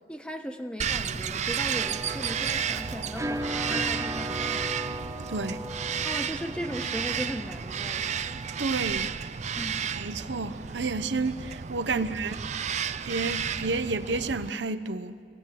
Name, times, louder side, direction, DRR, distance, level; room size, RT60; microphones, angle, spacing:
voice 1, 0.1-4.8 6.0-8.1 9.6-9.9 11.9-12.0, equal, 5° left, 1.3 m, -37 dB
Bird vocalization bird call bird song, 0.8-14.5, right 7 dB, 40° right, 0.5 m, -32 dB
sound 1, 1.7-9.1, right 1 dB, 20° right, 0.8 m, -38 dB
voice 2, 5.3-5.6 8.6-9.3 9.9-12.3 13.0-15.2, right 3 dB, 85° right, 0.9 m, -30 dB
26.0 x 17.5 x 7.6 m
head